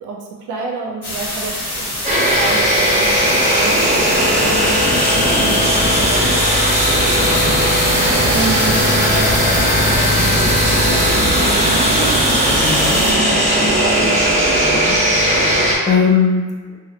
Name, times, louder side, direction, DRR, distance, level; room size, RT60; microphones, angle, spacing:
voice 1, 0.0-6.2 7.9-14.1, right 3 dB, 70° right, 0 dB, 0.5 m, -29 dB
sound 1, 1.0-13.1, left 1 dB, 45° left, 1.3 m, -26 dB
sound 2, 2.0-15.8, equal, 25° right, 0.7 m, -16 dB
voice 2, 12.6-13.0 14.5-16.8, left 5 dB, 25° left, -2 dB, 0.3 m, -20 dB
2.3 x 2.1 x 2.8 m, 1.3 s
cardioid pair, 120°, 31 cm